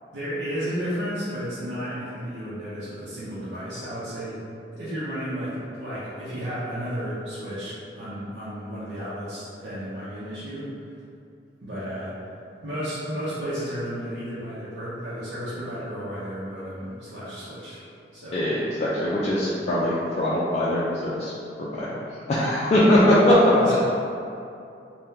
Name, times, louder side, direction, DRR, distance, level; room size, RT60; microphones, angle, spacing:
voice 1, 0.1-4.4 4.7-10.7 11.6-12.1 12.6-17.8 18.1-18.5 23.5-23.8, equal, 80° right, -11 dB, 0.7 m, -33 dB
voice 2, 18.3-21.3 21.6-22.0 22.3-23.8, left 1 dB, 35° left, -8 dB, 0.4 m, -21 dB
2.7 x 2.1 x 3.5 m, 2.6 s
head